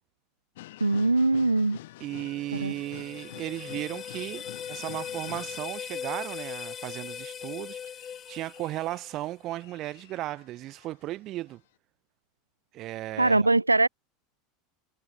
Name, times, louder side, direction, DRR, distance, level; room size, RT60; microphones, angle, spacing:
sound 1, 0.5-5.8 6.2-11.2 11.5-11.6, left 16 dB, 65° left, 7.1 m, -48 dB
voice 1, 0.8-1.8 2.6-2.7 13.2-13.9, right 2 dB, 90° right, 0.6 m, -22 dB
voice 2, 2.0-7.8 8.3-11.6 12.7-13.5, right 15 dB, 45° right, 3.4 m, -35 dB
sound 2, 2.2-9.3, left 8 dB, 30° left, 1.3 m, -40 dB
figure-of-eight pair, 80°, 0 cm